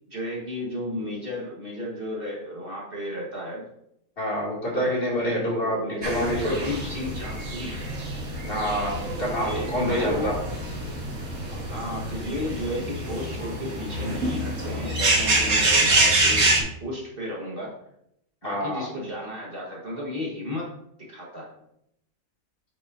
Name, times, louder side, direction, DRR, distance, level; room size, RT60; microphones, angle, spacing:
voice 1, 0.1-3.6 4.7-4.9 5.6-7.8 9.4-10.3 11.5-17.7 18.4-20.7 21.1-21.5, left 1 dB, 40° right, -3 dB, 1.6 m, -33 dB
voice 2, 4.2-6.6 8.4-10.3 18.4-18.9, equal, 40° left, -5 dB, 2.6 m, -27 dB
sound 1, 6.0-16.6, right 2 dB, 65° right, 1.7 m, -26 dB
8.8 x 5.5 x 2.6 m, 0.77 s
omnidirectional pair, 1.5 m